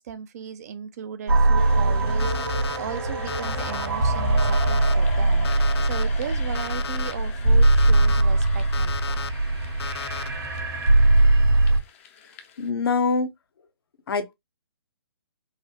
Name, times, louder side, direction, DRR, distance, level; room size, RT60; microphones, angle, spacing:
voice 1, 0.0-9.3, right 8 dB, 40° right, 0.5 m, -37 dB
sound 1, 1.3-11.8, right 2 dB, 65° right, 1.5 m, -21 dB
sound 2, 1.6-12.7, left 7 dB, 30° left, 0.6 m, -46 dB
Alarm, 2.2-2.8 3.3-3.9 4.4-4.9 5.4-6.0 6.5-7.1 7.6-8.2 8.7-9.3 9.8-10.3, left 7 dB, 80° left, 0.4 m, -34 dB
voice 2, 12.6-13.3 14.1-14.3, left 4 dB, 60° left, 0.9 m, -24 dB
4.0 x 2.1 x 2.9 m
hypercardioid pair, 150°, 14 cm